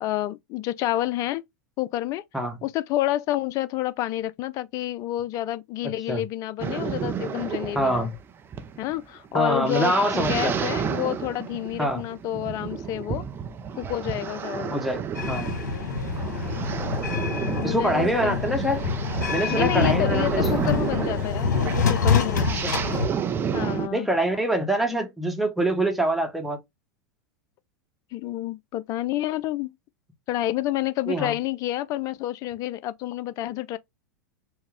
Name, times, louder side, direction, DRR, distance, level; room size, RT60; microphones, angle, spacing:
voice 1, 0.0-1.4 1.8-2.2 2.6-8.1 8.8-13.2 13.7-14.8 17.6-18.4 19.5-22.6 23.5-24.1 28.1-29.7 30.3-33.8, left 14 dB, 35° left, 0.4 m, -29 dB
sound 1, 6.6-23.9, right 7 dB, 20° right, 0.5 m, -31 dB
voice 2, 7.7-8.2 9.3-10.7 11.8-12.1 14.7-15.5 17.6-18.8 19.3-20.7 22.6-22.7 23.9-26.6 31.1-31.3, right 1 dB, ahead, 1.0 m, -25 dB
sound 2, 15.1-23.1, left 5 dB, 65° left, 1.3 m, -26 dB
4.6 x 2.1 x 3.3 m
figure-of-eight pair, 95°, 10 cm